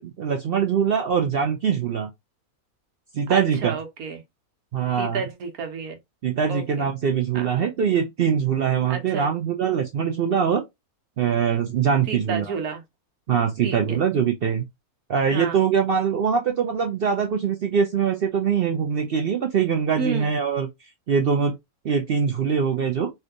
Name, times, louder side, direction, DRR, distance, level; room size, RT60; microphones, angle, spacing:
voice 1, 0.0-2.1 3.1-3.7 4.7-5.2 6.2-10.6 11.2-12.5 13.3-14.6 15.1-20.7 21.1-21.6 21.8-23.1, right 7 dB, 65° right, 0.6 m, -23 dB
voice 2, 3.3-4.2 5.0-6.0 6.5-6.9 7.3-7.5 8.9-9.3 12.1-12.8 13.6-14.0 15.3-15.6 20.0-20.3, right 5 dB, 80° right, 1.3 m, -31 dB
3.3 x 2.8 x 2.5 m
omnidirectional pair, 1.5 m